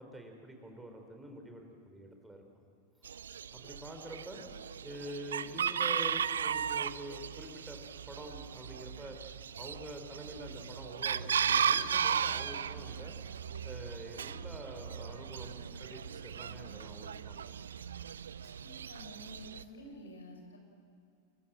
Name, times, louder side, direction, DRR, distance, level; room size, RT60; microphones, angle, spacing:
voice 1, 0.0-2.7 3.5-4.4 4.8-7.8 8.1-9.2 9.5-13.2 13.6-17.5 18.4-18.5, right 1 dB, 5° right, 3 dB, 4.3 m, -46 dB
Chicken rooster, 3.0-19.6, right 8 dB, 65° right, 0.6 m, -36 dB
voice 2, 18.6-20.6, equal, 75° left, 3 dB, 6.2 m, -50 dB
29.5 x 23.0 x 7.7 m, 2.5 s
figure-of-eight pair, 90°, 0 cm